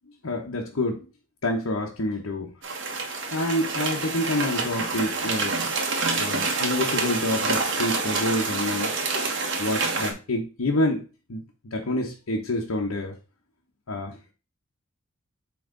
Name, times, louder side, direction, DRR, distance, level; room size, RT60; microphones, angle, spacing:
voice 1, 0.2-1.1 1.4-2.5 3.0-5.5 6.2-8.9 9.6-11.0 11.3-13.2 13.9-14.2, left 1 dB, 90° left, -1 dB, 0.9 m, -28 dB
sound 1, 2.6-10.1, right 3 dB, 60° right, 1.2 m, -27 dB
8.0 x 3.2 x 3.8 m, 0.33 s
head